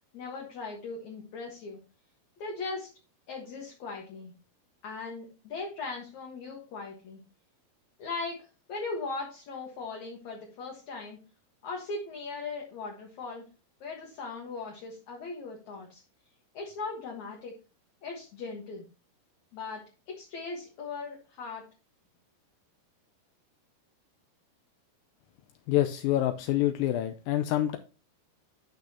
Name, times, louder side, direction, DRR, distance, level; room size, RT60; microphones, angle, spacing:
voice 1, 0.1-1.8 2.4-2.9 3.3-4.3 4.8-7.2 8.0-11.2 11.6-13.4 13.8-16.0 16.5-17.5 18.0-18.8 19.5-21.7, left 4 dB, 55° left, -1 dB, 2.5 m, -39 dB
voice 2, 25.7-27.8, left 13 dB, 80° left, 8 dB, 2.1 m, -26 dB
11.5 x 6.0 x 2.9 m, 0.33 s
omnidirectional pair, 4.5 m